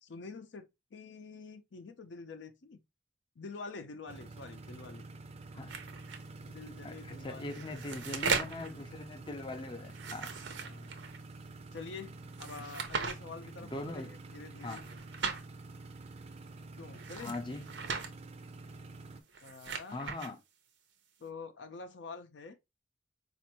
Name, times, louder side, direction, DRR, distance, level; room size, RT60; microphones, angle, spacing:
voice 1, 0.0-2.8 3.4-5.1 6.4-7.7 10.6-10.9 11.7-14.8 16.8-17.4 19.4-20.0 21.2-22.6, left 4 dB, 80° left, 0.6 m, -47 dB
sound 1, 4.1-19.2, right 2 dB, 35° right, 0.4 m, -48 dB
sound 2, 5.7-6.2 7.3-8.7 9.9-11.2 12.4-13.2 14.6-15.4 16.9-18.1 19.2-20.3, right 5 dB, 90° right, 0.7 m, -37 dB
voice 2, 6.8-10.3 13.6-14.1 14.6-14.8 17.2-17.7 19.9-20.4, left 2 dB, 25° left, 0.5 m, -41 dB
4.3 x 2.5 x 2.9 m
head